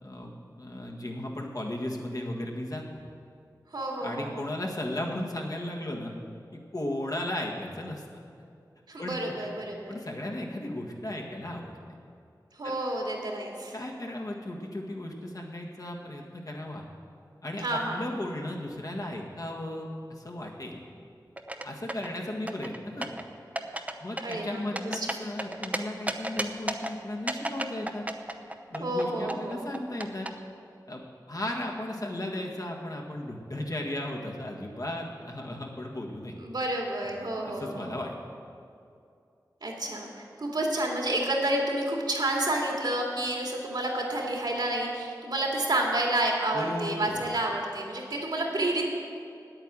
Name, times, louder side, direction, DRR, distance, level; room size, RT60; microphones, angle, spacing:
voice 1, 0.0-3.0 4.0-6.1 6.5-8.0 9.0-9.2 9.9-11.8 12.6-12.7 13.7-16.8 17.4-20.8 21.6-23.1 24.0-28.1 28.7-30.3 30.9-31.0 31.3-36.3 37.4-38.1 46.5-47.2, left 1 dB, 50° left, 0 dB, 1.7 m, -35 dB
voice 2, 3.7-4.4 8.9-10.0 12.6-13.7 17.6-18.0 24.2-25.2 28.8-29.7 36.4-37.9 39.6-48.9, right 1 dB, 75° right, -1 dB, 2.3 m, -30 dB
sound 1, 21.4-22.1 22.5-23.2 23.6-23.9 24.2-25.8 26.1-26.9 27.3-29.0 29.3-30.3, right 1 dB, 20° right, 0.8 m, -32 dB
9.4 x 8.8 x 7.5 m, 2.4 s
wide cardioid pair, 50°, 7 cm